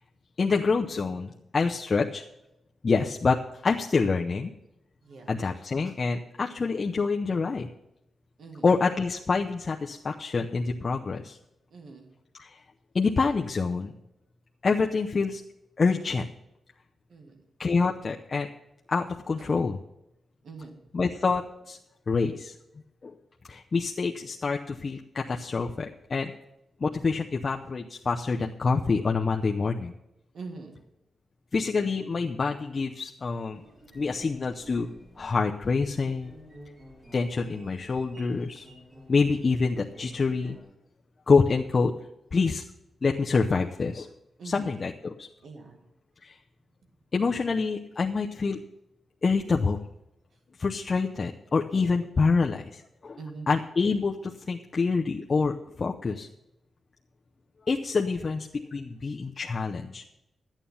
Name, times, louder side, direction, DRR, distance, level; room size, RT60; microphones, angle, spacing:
voice 1, 0.4-2.2 2.8-3.4 3.6-4.5 5.3-7.7 8.6-11.4 12.4-12.5 12.9-13.9 14.6-15.4 15.8-16.3 17.6-18.5 18.9-19.8 20.9-21.8 22.1-22.5 23.0-23.1 23.5-26.3 26.8-29.9 31.5-33.6 33.9-34.9 35.2-36.3 37.1-38.7 39.1-40.6 41.3-41.9 42.3-42.6 43.0-44.1 44.4-45.3 46.2-46.3 47.1-48.6 49.2-49.8 50.6-53.2 53.5-56.3 57.7-60.0, left 4 dB, 40° left, 2 dB, 0.7 m, -26 dB
voice 2, 5.0-5.3 8.4-8.7 11.7-12.1 17.1-17.4 19.4-19.5 20.4-20.8 30.3-30.8 44.4-44.8 45.4-45.8 51.9-52.3 53.2-53.5, right 4 dB, 75° right, 3 dB, 1.8 m, -43 dB
sound 1, 33.5-40.6, equal, 25° right, 3.4 m, -51 dB
13.0 x 9.1 x 5.6 m, 0.87 s
wide cardioid pair, 120°, 0 cm